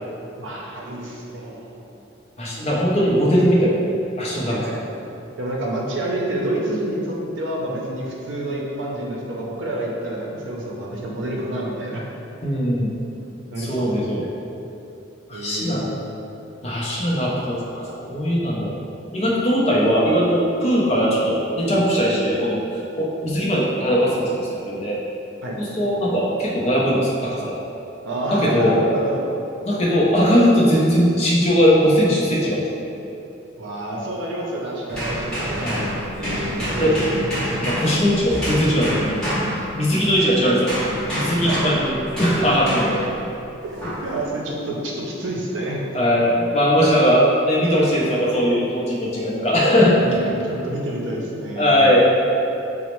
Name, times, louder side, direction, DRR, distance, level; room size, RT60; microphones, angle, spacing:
voice 1, 0.4-1.8 4.4-4.8 5.4-12.0 13.5-13.9 14.2-14.3 15.3-16.0 25.4-25.6 28.0-29.2 33.6-35.9 36.2-37.3 40.2-40.3 41.4-41.7 42.1-42.5 43.6-45.8 50.0-51.8, right 1 dB, 80° right, -3 dB, 0.5 m, -28 dB
voice 2, 2.4-3.7 4.2-4.8 12.4-12.9 13.6-14.2 15.3-15.8 16.6-18.7 19.1-22.7 23.0-25.0 25.6-27.6 28.3-28.8 29.6-32.8 35.6-35.8 36.8-36.9 37.4-39.2 39.8-40.7 41.1-43.0 45.9-50.0 51.6-52.1, equal, 35° left, -5 dB, 0.5 m, -19 dB
sound 1, 34.9-40.2 40.7-43.2 43.8-44.1, equal, 5° left, 0.9 m, -27 dB
4.0 x 2.0 x 3.0 m, 2.8 s
head